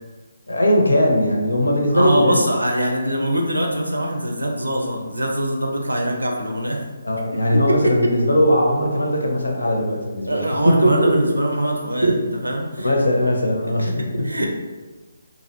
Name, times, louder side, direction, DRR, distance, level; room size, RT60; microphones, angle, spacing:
voice 1, 0.5-2.4 7.0-11.4 12.0-12.3 12.8-14.3, equal, 80° left, 0 dB, 0.6 m, -19 dB
voice 2, 1.9-6.8 7.7-7.9 10.3-12.9 13.8-14.5, right 1 dB, 85° right, 1 dB, 0.5 m, -23 dB
2.5 x 2.1 x 2.8 m, 1.3 s
figure-of-eight pair, 145°, 0 cm